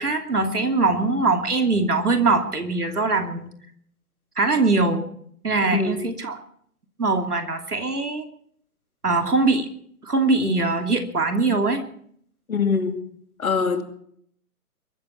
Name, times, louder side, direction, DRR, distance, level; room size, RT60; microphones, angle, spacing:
voice 1, 0.0-3.5 4.4-5.0 5.4-6.4 7.0-8.2 9.0-9.7 10.0-11.8, right 3 dB, 80° right, 2.9 m, -22 dB
voice 2, 5.6-6.0 12.5-13.0 13.4-13.8, left 5 dB, 65° left, 2.6 m, -23 dB
22.0 x 14.0 x 4.5 m
figure-of-eight pair, 130°, 45 cm